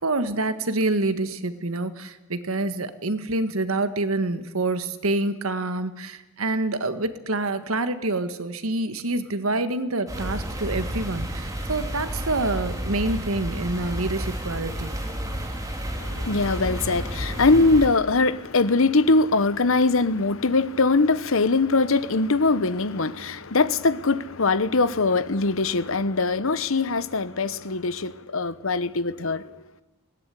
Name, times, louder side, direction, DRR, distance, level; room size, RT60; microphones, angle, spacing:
voice 1, 0.0-15.0, right 2 dB, 85° right, 1.6 m, -27 dB
sound 1, 10.1-17.9, equal, 15° right, 3.4 m, -31 dB
voice 2, 16.0-29.5, left 3 dB, 70° left, 1.0 m, -22 dB
19.5 x 18.0 x 9.9 m
head